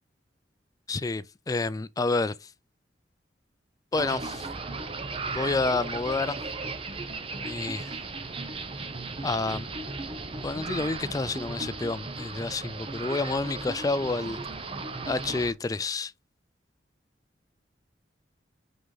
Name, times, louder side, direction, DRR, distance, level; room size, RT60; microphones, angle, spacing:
voice 1, 0.9-2.3 3.9-4.4 5.3-6.4 7.4-8.0 9.2-9.7 10.4-14.4 15.1-16.1, left 3 dB, 20° left, 0.3 m, -29 dB
sound 1, 3.9-15.5, right 3 dB, 30° right, 0.8 m, -36 dB
5.1 x 4.8 x 3.9 m
head